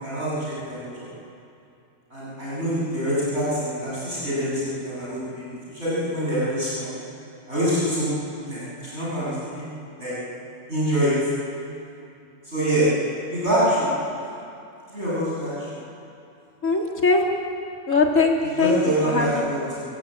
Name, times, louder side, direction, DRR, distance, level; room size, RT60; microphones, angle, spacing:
voice 1, 0.0-1.1 2.1-6.9 7.5-9.6 10.0-10.1 10.7-11.1 12.5-12.9 13.3-13.9 14.9-15.7 18.4-19.8, right 1 dB, 55° right, -8 dB, 8.0 m, -25 dB
voice 2, 16.6-17.2 17.9-18.8 19.0-19.6, left 4 dB, 80° left, 0 dB, 3.2 m, -21 dB
29.5 x 16.5 x 9.1 m, 2.6 s
omnidirectional pair, 1.3 m